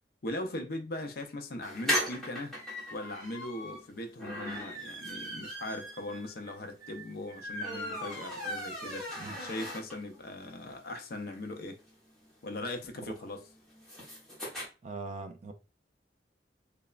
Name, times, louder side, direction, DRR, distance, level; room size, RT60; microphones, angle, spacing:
voice 1, 0.2-2.6 2.9-9.1 9.4-11.8 12.4-13.5, left 1 dB, 55° left, 0.5 m, -39 dB
sound 1, 1.6-10.2 10.6-10.7 10.9-11.0 11.3-14.7, equal, 5° left, 0.9 m, -38 dB
voice 2, 14.8-15.5, right 3 dB, 40° right, 0.3 m, -41 dB
3.0 x 2.0 x 2.3 m
head